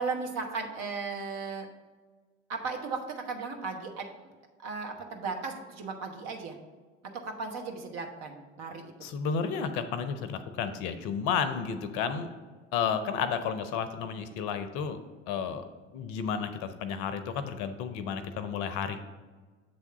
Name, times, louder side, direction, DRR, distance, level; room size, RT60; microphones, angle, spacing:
voice 1, 0.0-1.7 2.5-4.1 4.6-6.6 7.1-8.9, right 4 dB, 45° right, 3 dB, 1.1 m, -36 dB
voice 2, 9.0-12.3 12.7-15.0 15.3-15.6 15.9-19.0, left 6 dB, 50° left, 10 dB, 0.6 m, -32 dB
7.5 x 3.5 x 5.5 m, 1.4 s
figure-of-eight pair, 65°, 36 cm